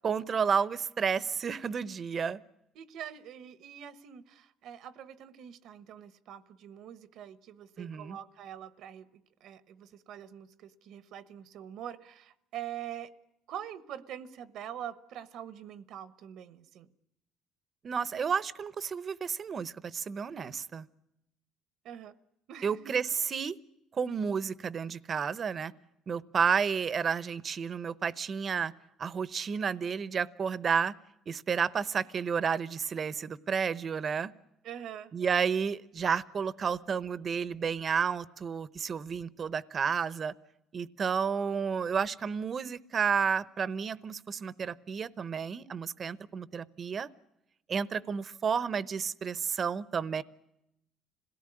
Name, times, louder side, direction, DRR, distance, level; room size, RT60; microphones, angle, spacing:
voice 1, 0.0-2.4 7.8-8.2 17.8-20.9 22.6-23.6 23.9-25.7 26.1-28.7 29.0-30.9 31.3-34.3 35.1-40.3 40.7-47.1 47.7-50.2, right 6 dB, 35° right, 18 dB, 0.9 m, -31 dB
voice 2, 2.7-13.1 13.5-16.9 21.8-22.1 22.5-22.8 34.6-35.1, right 10 dB, 65° right, 15 dB, 1.1 m, -44 dB
26.5 x 17.5 x 10.0 m, 0.87 s
cardioid pair, 125°, 0 cm